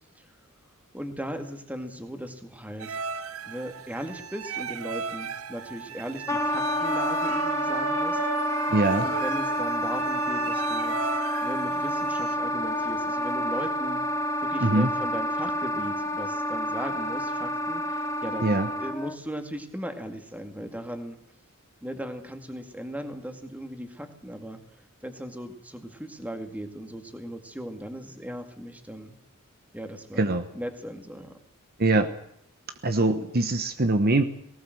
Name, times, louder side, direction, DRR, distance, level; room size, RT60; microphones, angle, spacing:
voice 1, 0.9-3.0 3.5-8.2 9.0-11.0 11.4-14.0 14.4-21.2 21.8-24.6 25.0-29.1 29.7-31.3, equal, 5° right, 6 dB, 2.1 m, -37 dB
sound 1, 2.8-12.3, right 6 dB, 80° right, 0.7 m, -36 dB
Wind instrument woodwind instrument, 6.3-19.2, equal, 15° left, 1.3 m, -28 dB
voice 2, 8.7-9.1 14.6-14.9 18.4-18.7 30.2-30.5 31.8-32.1 32.8-34.2, right 2 dB, 45° right, 9 dB, 1.1 m, -23 dB
19.0 x 18.5 x 7.8 m, 0.72 s
head